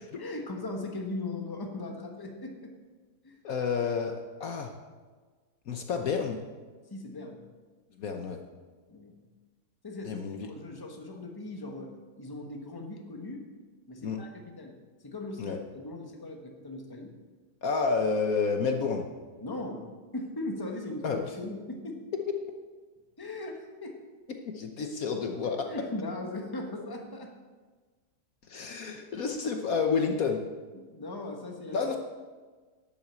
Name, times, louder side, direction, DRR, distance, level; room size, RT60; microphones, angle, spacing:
voice 1, 0.0-2.7 3.2-3.4 6.9-7.4 8.9-9.2 9.8-13.5 13.9-14.8 15.0-17.1 19.4-19.9 20.1-22.0 23.2-24.0 25.4-27.3 30.7-31.9, left 2 dB, 15° left, 3 dB, 1.2 m, -39 dB
voice 2, 3.4-4.1 4.4-4.7 5.7-6.4 8.0-8.4 10.0-10.5 14.0-14.2 15.4-15.6 17.6-19.1 21.0-21.2 24.5-25.7 28.5-30.4 31.7-32.0, left 5 dB, 60° left, 4 dB, 1.3 m, -29 dB
11.5 x 7.7 x 7.5 m, 1.4 s
omnidirectional pair, 1.8 m